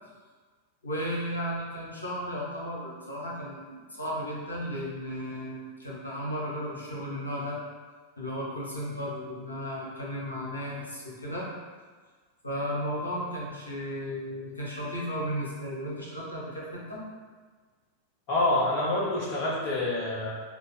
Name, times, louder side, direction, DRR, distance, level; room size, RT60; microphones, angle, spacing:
voice 1, 0.8-7.6 8.2-11.5 12.4-17.0, equal, 80° left, -5 dB, 0.9 m, -34 dB
voice 2, 18.3-20.4, left 2 dB, 45° left, -4 dB, 0.5 m, -27 dB
2.9 x 2.4 x 4.0 m, 1.5 s
figure-of-eight pair, 90°, 0 cm